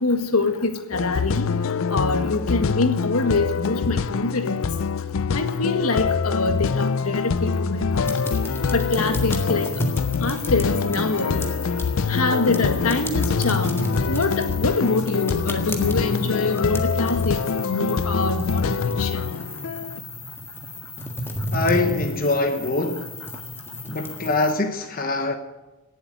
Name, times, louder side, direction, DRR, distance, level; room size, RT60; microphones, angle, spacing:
voice 1, 0.0-1.5 1.9-4.7 5.3-8.1 8.7-9.7 10.2-11.5 12.1-19.3, left 3 dB, 80° left, 1.8 m, -25 dB
sound 1, 0.9-20.0, left 5 dB, 60° left, 0.4 m, -25 dB
sound 2, 8.0-24.5, left 1 dB, 10° left, 1.7 m, -33 dB
voice 2, 21.5-23.2 23.9-25.3, left 2 dB, 40° left, 1.1 m, -23 dB
18.0 x 7.9 x 9.4 m
head